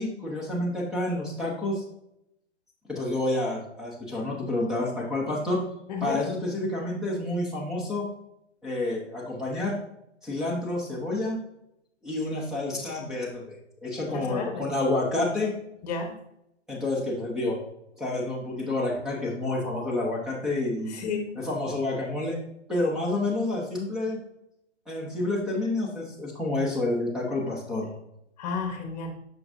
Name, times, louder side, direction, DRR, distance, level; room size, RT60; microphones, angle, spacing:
voice 1, 0.0-1.8 2.9-5.6 6.0-8.1 8.6-9.8 10.2-11.4 12.0-13.6 13.8-15.5 16.7-17.6 18.0-21.0 21.4-22.4 22.7-24.2 24.9-27.9, left 2 dB, ahead, -4 dB, 0.7 m, -29 dB
voice 2, 5.9-6.2 14.1-14.7 15.8-16.1 20.9-21.3 28.4-29.1, left 5 dB, 35° left, 5 dB, 1.1 m, -31 dB
6.2 x 5.7 x 2.6 m, 0.80 s
hypercardioid pair, 150°, 36 cm